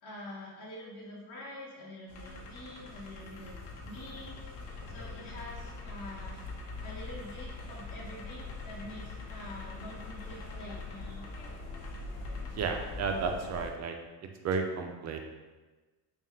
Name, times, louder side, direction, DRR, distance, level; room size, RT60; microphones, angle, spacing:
voice 1, 0.0-11.3, left 1 dB, 50° left, -7 dB, 1.1 m, -46 dB
sound 1, 2.1-13.7, left 3 dB, 90° left, 1.0 m, -43 dB
voice 2, 12.5-13.9 14.4-15.2, right 5 dB, 40° right, 4 dB, 0.4 m, -32 dB
3.6 x 2.4 x 4.2 m, 1.3 s
cardioid pair, 120°, 47 cm